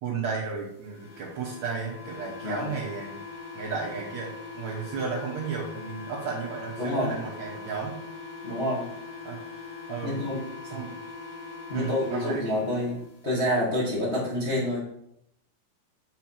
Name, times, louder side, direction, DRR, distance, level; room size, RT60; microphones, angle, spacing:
voice 1, 0.0-3.2 3.5-8.0 9.2-9.4 9.9-10.2 10.6-10.9 11.7-12.5, right 5 dB, 75° right, -5 dB, 1.7 m, -33 dB
sound 1, 0.9-13.0, left 4 dB, 45° left, 3.7 m, -41 dB
voice 2, 2.4-2.7 6.8-7.2 8.4-8.9 10.0-10.4 11.7-13.0 13.2-14.8, left 1 dB, 75° left, -7 dB, 0.6 m, -27 dB
6.9 x 4.6 x 5.7 m, 0.75 s
omnidirectional pair, 4.7 m